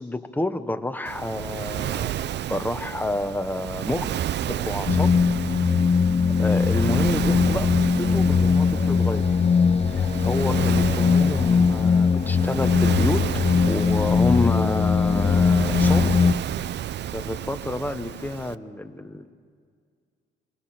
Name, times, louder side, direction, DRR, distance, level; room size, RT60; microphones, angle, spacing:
voice 1, 0.0-4.1 4.5-5.2 6.4-9.3 9.9-13.3 13.7-16.2 17.1-19.3, left 2 dB, 10° left, 9 dB, 1.2 m, -29 dB
Waves surf, 1.1-18.6, right 11 dB, 60° right, 0.5 m, -31 dB
sound 1, 4.9-16.3, left 5 dB, 30° left, 0.6 m, -20 dB
26.5 x 22.5 x 6.0 m, 2.1 s
cardioid pair, 90°, 20 cm